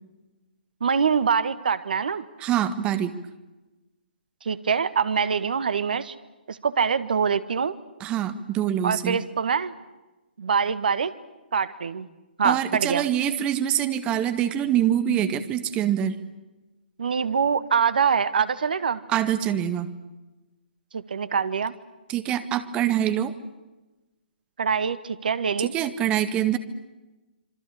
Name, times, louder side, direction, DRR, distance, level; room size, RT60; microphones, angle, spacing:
voice 1, 0.8-2.2 4.4-6.1 6.5-7.7 8.8-9.7 10.4-11.1 11.5-12.1 12.4-13.1 17.0-19.0 20.9-21.7 24.6-25.7, right 6 dB, 60° right, 15 dB, 1.7 m, -24 dB
voice 2, 2.4-3.2 8.0-9.2 12.4-16.2 19.1-19.9 22.1-23.3 25.6-26.6, right 10 dB, 20° right, 11 dB, 1.8 m, -25 dB
27.0 x 25.0 x 8.5 m, 1.1 s
figure-of-eight pair, 130°, 6 cm